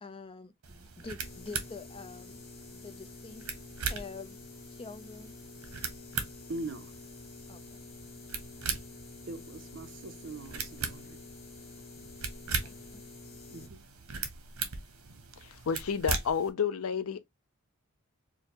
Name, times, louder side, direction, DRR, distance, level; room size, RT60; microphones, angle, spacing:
voice 1, 0.0-2.4 2.7-3.5 3.8-4.4 4.7-5.3 7.5-7.8 12.6-13.0, left 4 dB, 25° left, 0.5 m, -46 dB
sound 1, 0.6-16.5, right 5 dB, 80° right, 0.9 m, -40 dB
sound 2, 1.2-13.7, left 3 dB, 50° left, 0.9 m, -49 dB
voice 2, 6.5-6.9 9.3-11.2 13.5-13.8, right 2 dB, 60° right, 0.6 m, -41 dB
voice 3, 15.4-17.2, left 6 dB, 90° left, 0.5 m, -31 dB
4.9 x 2.1 x 2.9 m
head